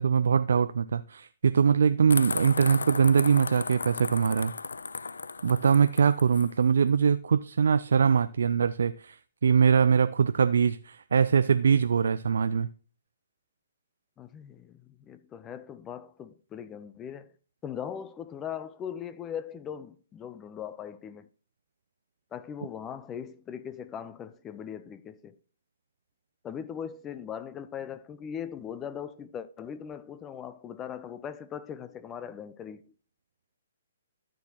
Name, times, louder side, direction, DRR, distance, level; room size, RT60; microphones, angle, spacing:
voice 1, 0.0-4.5 5.4-12.7, right 6 dB, 75° right, 0.4 m, -23 dB
sound 1, 2.1-6.5, left 4 dB, 85° left, 0.4 m, -35 dB
voice 2, 14.2-17.3 17.6-21.3 22.3-25.4 26.4-32.8, left 8 dB, 20° left, 0.6 m, -39 dB
13.0 x 6.3 x 2.9 m
hypercardioid pair, 135°, 0 cm